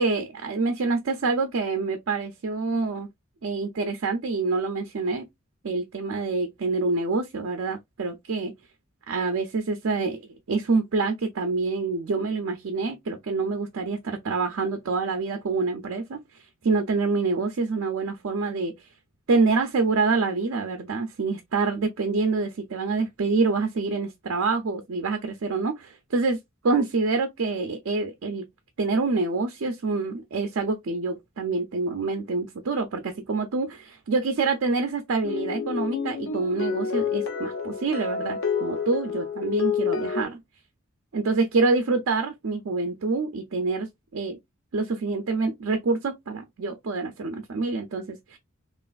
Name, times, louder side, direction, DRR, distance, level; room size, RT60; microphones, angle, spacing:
voice 1, 0.0-3.1 3.4-5.3 5.6-8.5 9.1-16.2 16.6-18.7 19.3-26.4 26.6-28.4 28.8-40.4 41.1-44.4 44.7-48.4, right 3 dB, 70° right, 0.5 m, -26 dB
sound 1, 35.2-40.2, left 6 dB, 70° left, 0.7 m, -28 dB
3.2 x 2.4 x 2.2 m
head